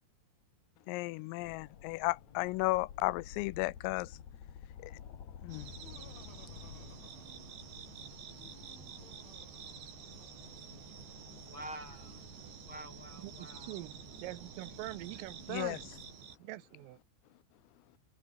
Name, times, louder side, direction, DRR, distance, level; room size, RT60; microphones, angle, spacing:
voice 1, 0.9-4.1 4.8-4.9 5.4-5.7 15.5-15.8, left 21 dB, 85° left, 3.4 m, -34 dB
sound 1, 1.4-16.2, left 8 dB, 50° left, 2.6 m, -53 dB
sound 2, 5.5-16.4, right 8 dB, 60° right, 5.8 m, -50 dB
Laughter, 5.6-7.8 8.2-10.6, left 5 dB, 65° left, 9.1 m, -60 dB
voice 2, 10.9-12.3 12.6-13.8, right 1 dB, 30° left, 2.6 m, -49 dB
voice 3, 13.2-15.9 16.4-17.0, right 18 dB, 85° right, 3.6 m, -44 dB
omnidirectional pair, 5.9 m